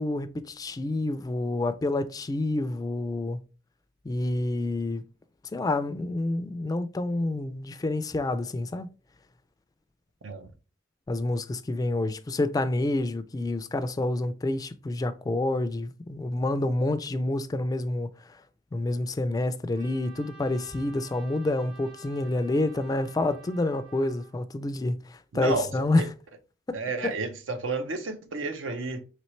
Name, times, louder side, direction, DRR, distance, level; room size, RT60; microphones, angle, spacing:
voice 1, 0.0-3.4 4.0-5.0 5.5-8.9 11.1-18.1 18.7-26.1 26.7-27.1, left 2 dB, 20° left, 0.3 m, -28 dB
Trumpet, 19.7-24.4, right 5 dB, 50° right, 1.9 m, -51 dB
voice 2, 25.3-25.7 26.0-26.1 26.7-29.0, right 3 dB, 85° right, 0.7 m, -31 dB
4.2 x 3.1 x 3.1 m
head